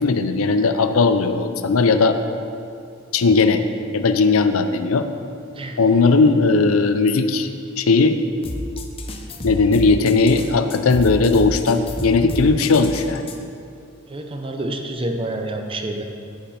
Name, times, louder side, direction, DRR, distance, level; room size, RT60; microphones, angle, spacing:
voice 1, 0.0-2.2 3.1-3.6 3.9-5.1 5.8-7.5 7.8-8.2 9.4-13.2, left 4 dB, 75° left, 9 dB, 0.5 m, -17 dB
sound 1, 8.4-13.4, left 1 dB, 25° left, 0.6 m, -30 dB
voice 2, 14.1-16.0, right 1 dB, 25° right, 4 dB, 0.7 m, -28 dB
14.0 x 5.1 x 4.3 m, 2.4 s
head